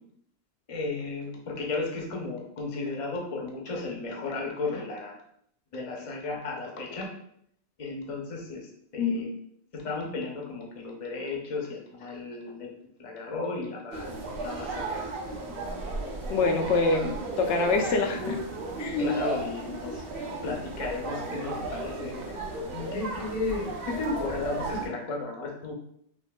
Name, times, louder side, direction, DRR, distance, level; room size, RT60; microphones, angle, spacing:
voice 1, 0.7-5.2 5.7-7.1 7.8-9.3 9.7-12.7 13.0-14.1 14.4-15.0 19.0-20.0 20.4-22.1 22.7-25.7, left 3 dB, 35° left, 0 dB, 0.6 m, -34 dB
voice 2, 9.0-9.3 16.3-18.4 18.8-19.2, left 3 dB, 90° left, 4 dB, 0.9 m, -25 dB
sound 1, 13.9-24.9, right 2 dB, 60° right, 1.0 m, -35 dB
4.9 x 2.6 x 2.2 m, 0.68 s
omnidirectional pair, 1.1 m